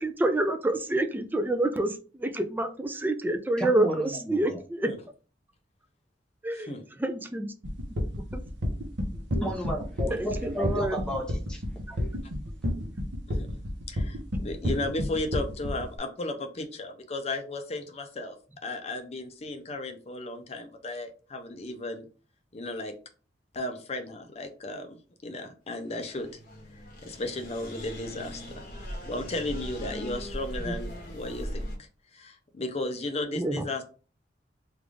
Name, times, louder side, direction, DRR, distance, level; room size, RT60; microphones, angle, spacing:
voice 1, 0.0-4.9 6.4-7.5 8.3-8.4 10.1-11.0 30.6-30.7 33.3-33.6, right 1 dB, 10° right, 7 dB, 0.4 m, -28 dB
voice 2, 3.6-4.6 9.4-11.6 11.9-12.0, equal, 5° left, 0 dB, 0.9 m, -33 dB
sound 1, 7.6-15.9, left 1 dB, 85° right, 0.8 m, -30 dB
voice 3, 13.3-13.6 13.9-18.4 18.6-22.0 22.5-22.9 23.5-25.0 25.2-26.3 26.7-28.6 29.1-31.7 32.1-33.8, left 2 dB, 35° left, 5 dB, 0.6 m, -35 dB
sound 2, 25.8-31.8, equal, 50° left, 1.2 m, -39 dB
3.3 x 2.5 x 3.4 m, 0.37 s
head